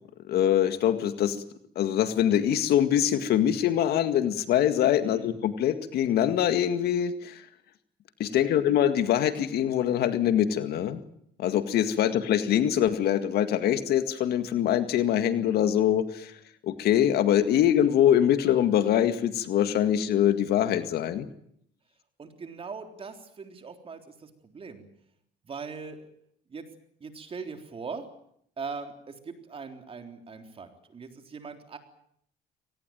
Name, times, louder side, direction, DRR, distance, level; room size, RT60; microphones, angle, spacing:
voice 1, 0.2-1.4 1.8-7.5 8.2-11.0 11.4-16.3 16.6-21.3, left 10 dB, 70° left, 10 dB, 2.0 m, -24 dB
voice 2, 5.0-5.4 8.2-8.7 22.2-24.8 25.4-26.1 26.5-26.7 27.0-28.1 28.6-31.8, right 5 dB, 35° right, 6 dB, 3.7 m, -41 dB
24.0 x 19.0 x 9.2 m, 0.71 s
cardioid pair, 110°, 17 cm